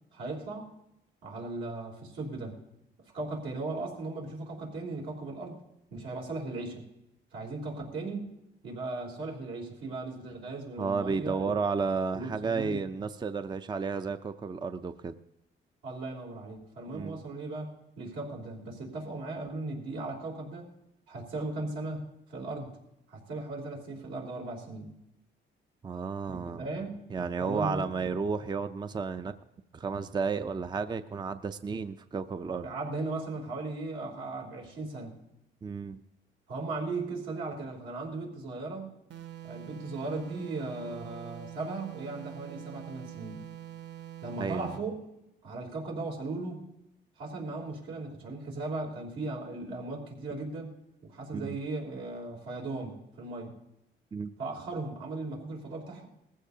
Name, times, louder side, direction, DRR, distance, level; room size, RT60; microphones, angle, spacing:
voice 1, 0.1-0.7 1.2-2.6 3.1-5.6 5.9-6.8 7.3-8.3 8.6-11.5 12.1-12.8 15.8-17.7 18.0-20.7 21.1-22.7 23.1-24.9 26.3-27.0 27.4-27.9 32.6-35.1 36.5-38.9 39.4-43.4 44.2-45.0 45.4-46.6 47.2-50.7 51.0-53.5 54.4-56.1, right 2 dB, 85° right, -2 dB, 3.3 m, -37 dB
voice 2, 10.8-15.1 16.9-17.2 25.8-26.7 27.1-29.3 29.7-32.7 35.6-36.0 44.4-44.8 51.3-51.6 54.1-54.3, right 5 dB, 20° right, 10 dB, 0.5 m, -32 dB
sound 1, 39.1-44.9, right 12 dB, 60° right, 0.7 m, -45 dB
19.5 x 15.0 x 2.8 m, 0.86 s
cardioid pair, 90°, 20 cm